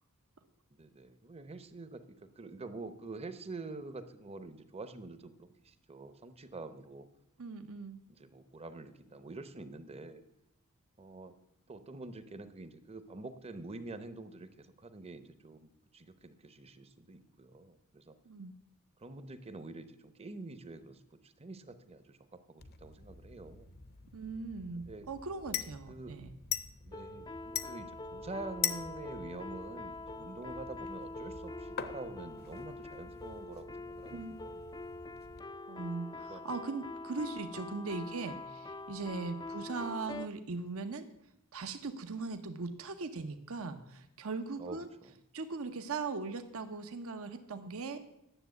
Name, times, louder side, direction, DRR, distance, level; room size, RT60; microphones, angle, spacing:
voice 1, 0.8-7.1 8.1-10.2 11.0-11.3 11.7-18.1 19.0-22.2 22.5-23.7 24.8-25.1 25.9-26.2 26.8-34.6 36.3-36.4 44.6-45.1, right 3 dB, 30° right, 11 dB, 0.8 m, -47 dB
voice 2, 7.4-8.0 18.2-18.5 24.1-26.3 34.1-34.4 35.7-41.1 41.5-44.9 45.3-48.0, right 4 dB, 70° right, 8 dB, 0.8 m, -39 dB
sound 1, 22.6-35.4, left 9 dB, 45° left, 0.7 m, -43 dB
sound 2, 26.9-40.3, left 2 dB, 20° left, 0.4 m, -44 dB
10.0 x 7.1 x 8.1 m, 0.82 s
head